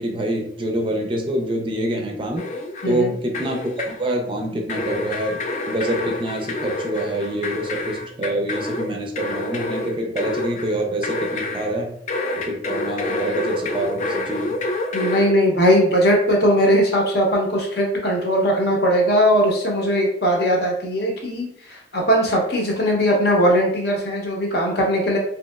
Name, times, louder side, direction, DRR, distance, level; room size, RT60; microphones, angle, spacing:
voice 1, 0.0-2.5 2.9-11.9 12.3-14.6, right 1 dB, 30° right, 2 dB, 0.4 m, -26 dB
sound 1, 2.4-3.0 3.3-4.1 4.7-11.7 12.1-15.3, left 2 dB, 40° left, 0.3 m, -28 dB
voice 2, 2.8-3.1 14.9-25.2, equal, 60° left, -1 dB, 0.8 m, -19 dB
3.0 x 2.8 x 2.3 m, 0.68 s
head